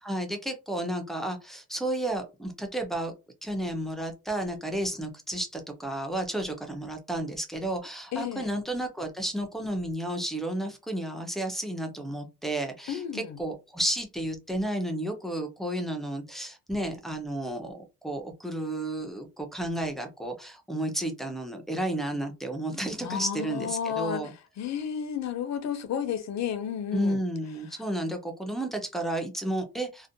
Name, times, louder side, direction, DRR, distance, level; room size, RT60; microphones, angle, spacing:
voice 1, 0.0-3.1 3.4-24.3 26.9-30.1, right 1 dB, ahead, 0.3 m, -32 dB
voice 2, 8.1-8.5 12.9-13.4 23.0-27.2, left 8 dB, 55° left, 0.5 m, -32 dB
2.6 x 2.0 x 2.5 m
wide cardioid pair, 175°, 32 cm